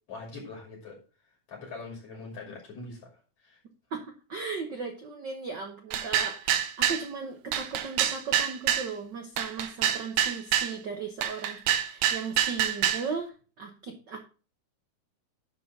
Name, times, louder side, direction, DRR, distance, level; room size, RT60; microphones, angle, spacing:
voice 1, 0.1-1.0 1.5-3.0 3.4-3.6, left 3 dB, 50° left, -1 dB, 3.6 m, -42 dB
voice 2, 3.9-14.2, right 5 dB, 65° right, 3 dB, 1.1 m, -37 dB
sound 1, 5.9-7.0 7.5-8.9 9.4-10.7 11.2-13.1, right 10 dB, 80° right, 2.3 m, -26 dB
11.5 x 3.9 x 5.8 m, 0.36 s
omnidirectional pair, 3.6 m